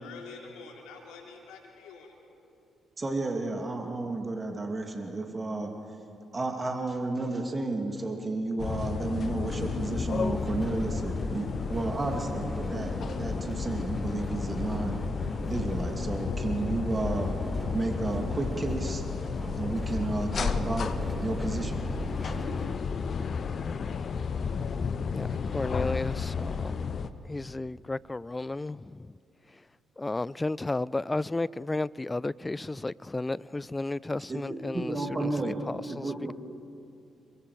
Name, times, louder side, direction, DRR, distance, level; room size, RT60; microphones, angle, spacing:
voice 1, 0.0-2.1, left 4 dB, 65° left, 3.8 m, -46 dB
voice 2, 3.0-5.7 6.3-15.0 15.5-17.4 17.7-19.0 19.5-20.9 21.2-21.8 22.2-22.3 34.3-34.4 34.7-35.6 35.9-36.3, right 2 dB, 30° right, 2.7 m, -32 dB
sound 1, 8.6-27.1, left 5 dB, 50° left, 1.0 m, -32 dB
sound 2, 9.4-22.7, right 1 dB, ahead, 5.4 m, -39 dB
voice 3, 25.1-26.9 27.2-29.2 29.5-29.6 30.0-36.3, left 2 dB, 20° left, 0.4 m, -33 dB
27.5 x 23.5 x 5.2 m
figure-of-eight pair, 40°, 0 cm